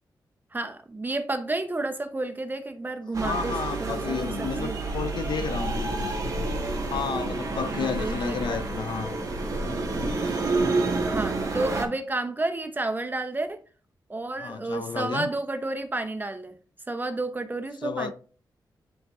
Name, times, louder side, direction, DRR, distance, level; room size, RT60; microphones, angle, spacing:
voice 1, 0.5-3.5 3.8-4.8 7.8-8.6 11.0-13.6 14.1-16.6 16.9-18.1, right 2 dB, 25° right, 0.7 m, -31 dB
sound 1, 3.1-11.9, right 3 dB, 45° right, 1.6 m, -29 dB
voice 2, 3.2-6.1 6.8-9.2 14.4-15.3 17.8-18.1, left 6 dB, 70° left, 0.6 m, -32 dB
10.0 x 3.8 x 2.5 m
wide cardioid pair, 95°, 8 cm